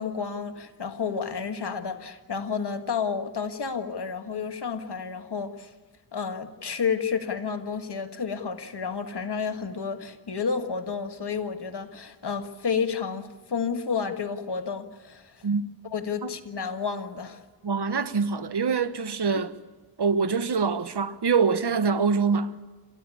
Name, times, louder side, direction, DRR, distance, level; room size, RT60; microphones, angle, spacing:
voice 1, 0.0-5.7 6.1-15.4 15.9-17.4, left 6 dB, 85° left, 1.8 m, -31 dB
voice 2, 17.6-19.5 20.0-22.6, right 5 dB, 85° right, 1.2 m, -25 dB
28.0 x 14.5 x 9.8 m
wide cardioid pair, 50°, 39 cm